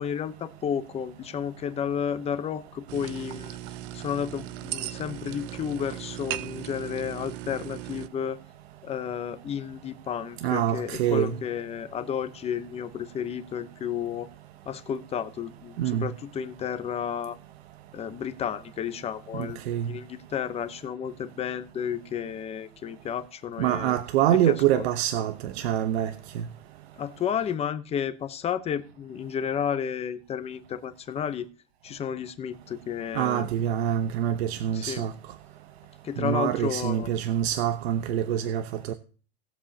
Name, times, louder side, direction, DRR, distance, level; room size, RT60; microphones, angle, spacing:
voice 1, 0.0-3.6 3.9-8.4 8.8-14.3 14.6-17.4 17.9-23.9 24.3-24.9 27.0-31.5 31.8-33.5 34.7-35.0 36.0-37.1, left 8 dB, 20° left, 0.9 m, -32 dB
sound 1, 2.9-8.1, right 14 dB, 60° right, 0.7 m, -37 dB
voice 2, 10.4-11.4 15.8-16.1 19.4-19.9 23.6-26.5 33.1-35.1 36.2-38.9, right 11 dB, 90° right, 1.0 m, -26 dB
19.5 x 7.5 x 2.8 m
supercardioid pair, 160°, 30 cm